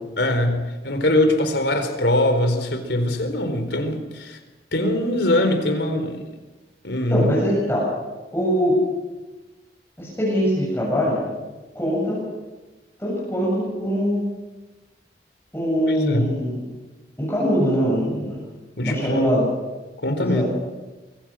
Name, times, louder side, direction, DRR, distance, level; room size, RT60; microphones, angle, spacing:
voice 1, 0.2-4.4 4.7-6.2 6.8-7.3 15.9-16.3 18.8-19.3 20.0-20.4, left 1 dB, 80° left, 7 dB, 4.1 m, -22 dB
voice 2, 7.1-7.9 8.3-8.8 10.0-11.2 11.7-12.2 13.0-14.2 15.5-16.7 17.2-18.4 18.8-19.4 20.2-20.4, equal, 15° left, -6 dB, 7.5 m, -22 dB
25.5 x 23.5 x 6.4 m, 1.2 s
head